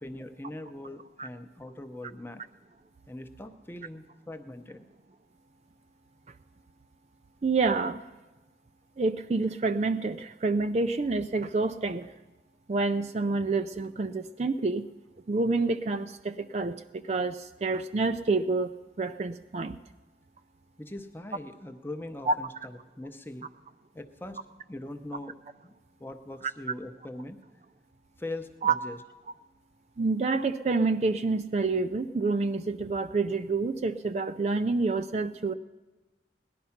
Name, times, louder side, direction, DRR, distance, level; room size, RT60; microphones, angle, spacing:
voice 1, 0.0-2.4 3.1-4.8 20.8-23.5 23.9-24.4 24.7-25.4 25.6-25.7 26.0-27.4 28.2-29.0, left 1 dB, 10° left, 8 dB, 0.7 m, -41 dB
voice 2, 7.4-8.0 9.0-12.1 12.7-14.9 15.3-19.8 22.3-22.4 28.6-28.8 30.0-35.5, right 3 dB, 40° right, 10 dB, 0.4 m, -28 dB
18.0 x 11.0 x 5.8 m, 1.2 s
head